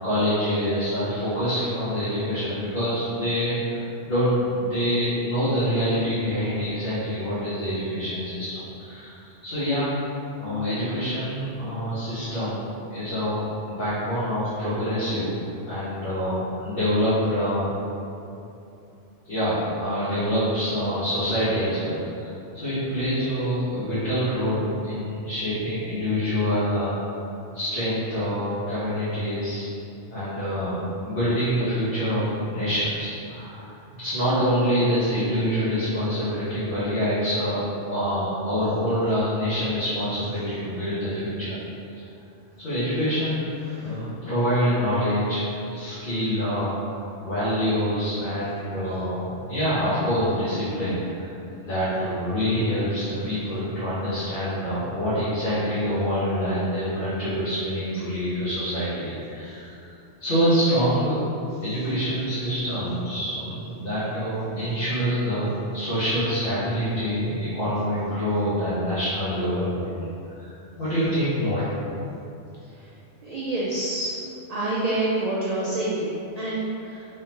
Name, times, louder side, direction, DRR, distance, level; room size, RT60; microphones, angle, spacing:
voice 1, 0.0-9.9 10.4-15.3 15.6-17.7 19.2-27.2 27.5-29.6 30.1-41.5 42.6-43.5 43.8-46.9 47.2-51.3 51.6-59.8 60.2-61.2 61.6-69.9 70.4-71.7, equal, 50° left, -13 dB, 1.2 m, -26 dB
voice 2, 43.6-44.0 72.8-72.9 73.2-74.2 74.5-77.1, right 2 dB, 90° right, -6 dB, 0.3 m, -27 dB
3.6 x 3.4 x 2.9 m, 2.7 s
omnidirectional pair, 1.3 m